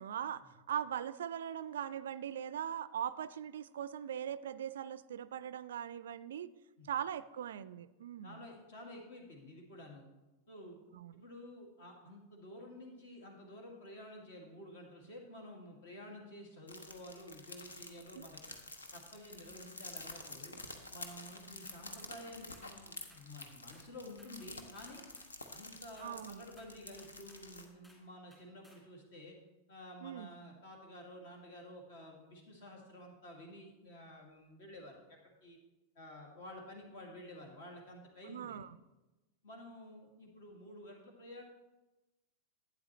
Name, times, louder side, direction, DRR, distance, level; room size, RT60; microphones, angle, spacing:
voice 1, 0.0-6.5 6.8-8.4 10.9-11.2 18.1-18.3 26.0-26.4 30.0-30.3 38.3-38.8, right 9 dB, 60° right, 16 dB, 0.3 m, -40 dB
voice 2, 8.2-10.0 10.5-10.8 11.1-18.4 18.9-20.6 20.9-25.0 25.5-29.4 29.7-35.6 36.0-38.6 39.4-41.4, left 1 dB, 55° left, 1 dB, 2.2 m, -51 dB
sound 1, 16.7-27.6, left 2 dB, 75° left, 0.9 m, -50 dB
sound 2, 21.6-22.1 22.5-22.8 23.1-23.9 24.2-25.3 26.0-26.2 26.6-27.5 27.8-28.1 28.3-28.9, left 1 dB, 10° left, 2.4 m, -65 dB
11.5 x 9.1 x 3.1 m, 1.1 s
figure-of-eight pair, 90°, 0 cm